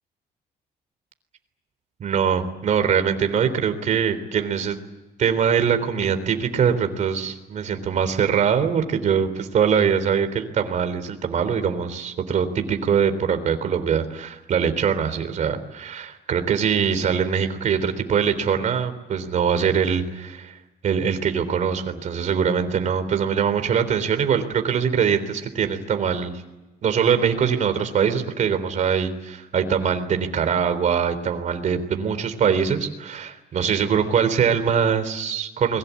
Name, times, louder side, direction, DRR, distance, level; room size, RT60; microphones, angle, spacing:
voice 1, 2.0-4.8 5.2-20.6 20.8-26.3 26.8-35.8, right 7 dB, 45° right, 8 dB, 3.6 m, -22 dB
29.0 x 22.5 x 8.4 m, 1.0 s
cardioid pair, 165°, 17 cm